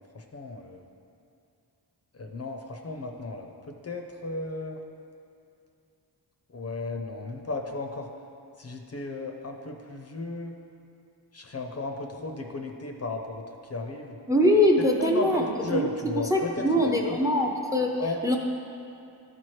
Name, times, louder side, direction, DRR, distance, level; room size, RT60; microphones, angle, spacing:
voice 1, 0.1-0.8 2.1-4.8 6.5-8.1 8.6-10.5 11.3-14.2 15.0-17.0 18.0-18.2, left 2 dB, 35° left, 3 dB, 0.5 m, -35 dB
voice 2, 14.3-17.9 18.2-18.4, left 1 dB, 10° right, 1 dB, 0.5 m, -23 dB
12.0 x 4.4 x 3.1 m, 2.6 s
wide cardioid pair, 105°, 42 cm